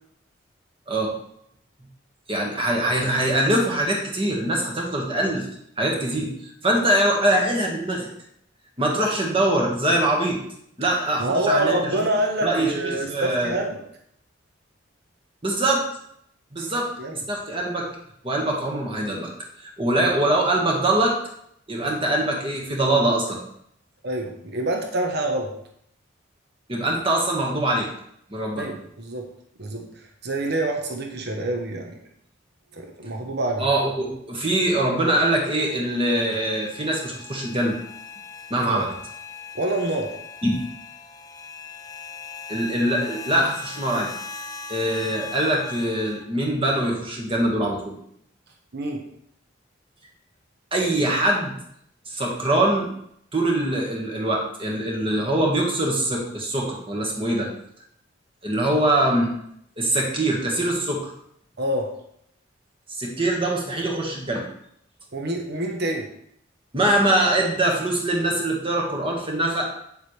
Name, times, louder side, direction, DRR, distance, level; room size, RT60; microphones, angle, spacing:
voice 1, 2.3-5.5 5.8-8.1 8.8-10.4 10.8-11.7 12.4-13.5 15.4-15.8 16.5-16.9 17.3-17.9 18.2-19.3 19.6-21.2 21.7-23.4 26.7-27.9 28.3-28.7 33.6-37.7 38.5-38.9 40.4-40.5 42.5-44.4 44.7-48.0 50.7-51.5 52.1-52.9 53.3-57.5 58.4-59.3 59.8-61.1 63.0-64.4 66.7-69.7, right 1 dB, 25° right, 0 dB, 1.6 m, -23 dB
voice 2, 11.2-13.8 16.6-17.2 21.7-21.9 24.0-25.5 28.5-29.2 29.6-32.0 32.7-33.7 38.7-38.9 39.5-40.1 48.7-49.0 61.6-61.9 65.1-66.1, right 1 dB, 55° right, 3 dB, 1.1 m, -27 dB
sound 1, 35.4-46.2, left 4 dB, 20° left, 0.6 m, -40 dB
8.8 x 7.3 x 3.3 m, 0.71 s
head